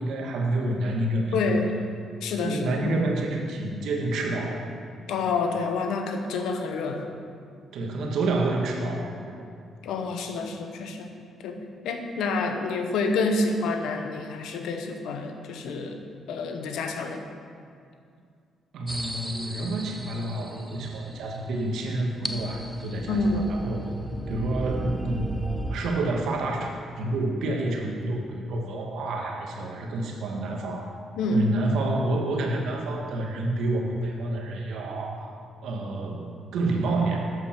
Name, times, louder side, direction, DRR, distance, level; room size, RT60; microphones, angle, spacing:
voice 1, 0.0-1.6 2.4-4.7 7.7-9.4 18.7-23.2 23.5-23.9 24.3-25.4 25.7-30.9 31.3-37.3, right 2 dB, 75° right, 1 dB, 1.2 m, -28 dB
voice 2, 1.3-1.7 2.2-2.9 5.1-7.1 9.8-11.1 11.4-11.6 11.8-16.0 16.3-17.2 23.1-23.5 31.2-31.5, left 3 dB, 85° left, 5 dB, 0.8 m, -28 dB
sound 1, 18.9-25.8, right 1 dB, ahead, 0.6 m, -36 dB
8.0 x 7.4 x 4.3 m, 2.3 s
cardioid pair, 90°, 0 cm